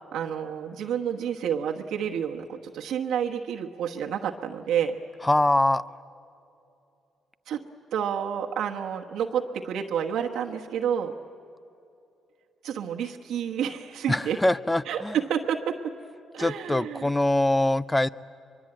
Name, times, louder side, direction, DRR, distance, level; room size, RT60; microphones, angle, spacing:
voice 1, 0.1-5.0 7.5-7.6 7.9-11.1 12.6-14.4 14.8-15.9 16.3-17.1, right 8 dB, 80° right, 1 dB, 1.2 m, -29 dB
voice 2, 5.2-5.8 14.1-15.2 16.4-18.1, left 1 dB, 15° left, 17 dB, 0.5 m, -23 dB
23.5 x 23.0 x 8.9 m, 2.7 s
cardioid pair, 90°, 0 cm